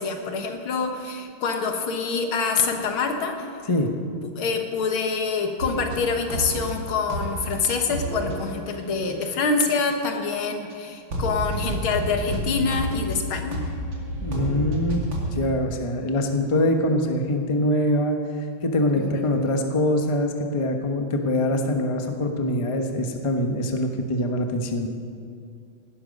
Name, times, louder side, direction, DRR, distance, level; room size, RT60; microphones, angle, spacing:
voice 1, 0.0-3.5 4.2-13.7 19.1-19.2, left 4 dB, 90° left, 4 dB, 2.2 m, -26 dB
sound 1, 5.6-6.8 7.1-7.5 7.9-10.4 10.7-10.8 11.1-15.5, right 1 dB, 70° right, 3.1 m, -30 dB
voice 2, 14.2-15.1 15.4-18.2 18.6-24.9, left 1 dB, 20° left, 4 dB, 0.8 m, -24 dB
17.5 x 12.0 x 5.3 m, 2.4 s
omnidirectional pair, 2.2 m